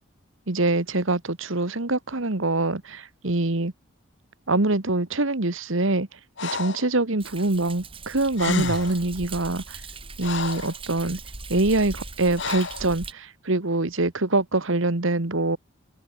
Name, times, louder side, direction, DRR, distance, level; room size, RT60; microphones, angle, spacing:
voice 1, 0.5-3.7 4.5-6.1 6.4-9.8 10.2-11.2 11.5-15.6, right 2 dB, 65° right, 1.6 m, -24 dB
Breathing, 6.4-6.9 8.1-8.2 8.3-9.0 9.7-10.8 12.4-12.9, left 4 dB, 55° left, 1.4 m, -30 dB
Thunder, 7.2-13.1, right 3 dB, 25° right, 7.3 m, -40 dB
open air
head